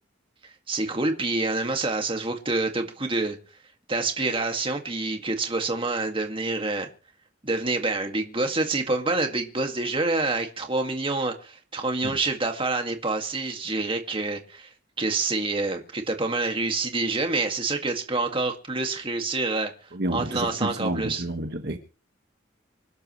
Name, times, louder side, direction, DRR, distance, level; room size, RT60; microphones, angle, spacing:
voice 1, 0.7-3.4 3.9-6.9 7.4-14.7 15.0-19.7 20.1-21.2, right 3 dB, 25° right, 2.1 m, -27 dB
voice 2, 19.9-21.8, right 1 dB, 55° right, 1.6 m, -30 dB
26.0 x 12.0 x 3.2 m
head